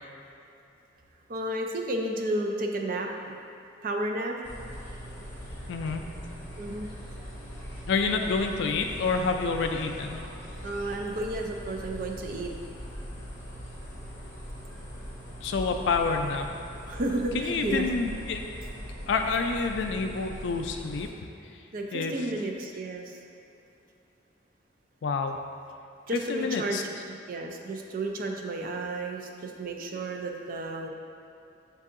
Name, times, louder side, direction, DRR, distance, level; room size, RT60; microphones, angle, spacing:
voice 1, 1.3-3.4 3.8-4.3 6.6-6.9 10.6-12.5 16.9-17.9 21.7-23.2 26.1-26.8 27.1-30.9, right 1 dB, 45° right, 2 dB, 0.4 m, -32 dB
sound 1, 4.4-21.1, equal, 15° left, 0.7 m, -41 dB
voice 2, 5.7-6.1 7.9-10.2 15.4-16.5 17.3-18.4 19.1-21.1 21.9-22.1 25.0-25.4 26.3-26.8, left 4 dB, 70° left, 5 dB, 0.3 m, -28 dB
7.4 x 2.7 x 2.5 m, 2.7 s
head